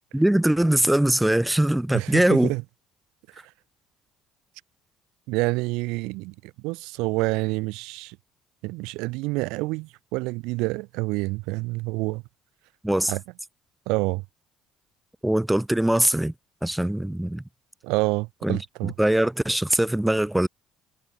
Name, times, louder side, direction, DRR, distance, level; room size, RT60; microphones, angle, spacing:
voice 1, 0.1-2.5 12.8-13.1 15.2-16.3 16.6-17.4 18.4-20.5, right 1 dB, 5° right, 1.8 m, -22 dB
voice 2, 1.9-2.6 5.3-8.2 8.6-12.2 13.1-13.2 13.9-14.2 17.8-18.9, right 24 dB, 70° right, 0.6 m, -28 dB
hypercardioid pair, 55°, 0 cm